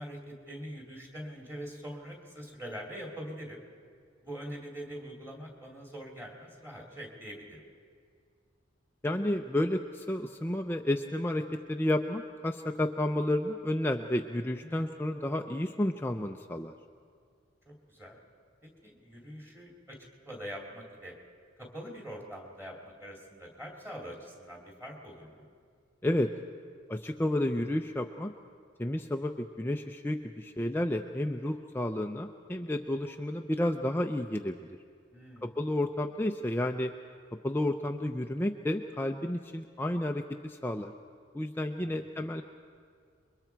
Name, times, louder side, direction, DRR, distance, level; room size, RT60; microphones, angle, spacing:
voice 1, 0.0-3.6 4.2-7.6 14.6-14.9 17.7-18.2 18.6-20.0 20.2-21.2 21.6-25.5 35.1-35.5 41.8-42.3, equal, 10° right, 0 dB, 2.7 m, -44 dB
voice 2, 9.0-16.7 26.0-26.3 26.9-28.3 28.8-34.6 35.4-36.9 37.4-40.9 41.3-42.4, left 1 dB, 10° left, 4 dB, 0.5 m, -31 dB
28.5 x 22.5 x 4.6 m, 2.2 s
head